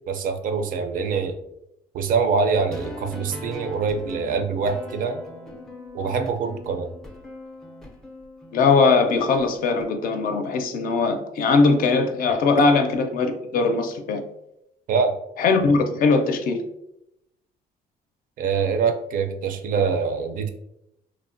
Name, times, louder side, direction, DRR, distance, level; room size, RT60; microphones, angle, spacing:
voice 1, 0.1-1.4 1.9-5.2 5.9-6.9 14.9-15.1 18.4-20.5, right 5 dB, 55° right, 6 dB, 0.4 m, -24 dB
sound 1, 2.6-9.8, left 1 dB, 5° left, 0.4 m, -40 dB
voice 2, 8.5-14.2 15.4-16.6, left 4 dB, 60° left, 6 dB, 0.4 m, -20 dB
3.1 x 2.1 x 2.5 m, 0.83 s
cardioid pair, 110°, 17 cm